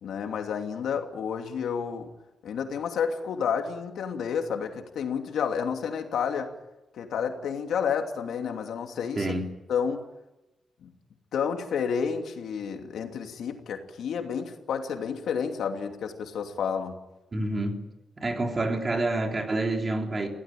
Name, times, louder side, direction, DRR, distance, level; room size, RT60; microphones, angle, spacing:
voice 1, 0.0-2.1 2.4-6.5 6.9-9.3 9.7-10.1 10.8-10.9 11.3-17.0, left 7 dB, 90° left, 2.8 m, -30 dB
voice 2, 9.2-9.5 17.3-17.8 18.2-20.3, right 2 dB, 25° right, 3.5 m, -28 dB
26.5 x 17.0 x 9.3 m
wide cardioid pair, 150°, 0 cm